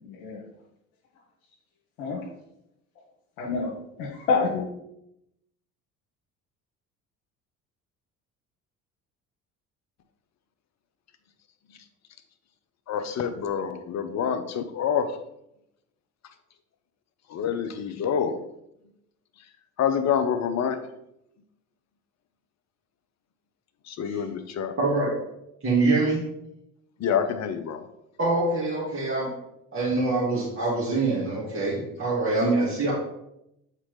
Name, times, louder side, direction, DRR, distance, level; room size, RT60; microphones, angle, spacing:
voice 1, 0.0-0.4 2.0-2.2 3.4-4.7, left 4 dB, 70° left, -2 dB, 1.1 m, -28 dB
voice 2, 12.9-15.2 17.3-18.4 19.8-20.8 23.8-24.7 27.0-27.8, left 7 dB, 40° left, 9 dB, 0.7 m, -27 dB
voice 3, 24.8-25.1 25.6-26.3 28.2-29.3 29.7-32.9, right 3 dB, 30° right, -7 dB, 2.1 m, -24 dB
7.4 x 4.1 x 3.3 m, 0.81 s
figure-of-eight pair, 60°, 44 cm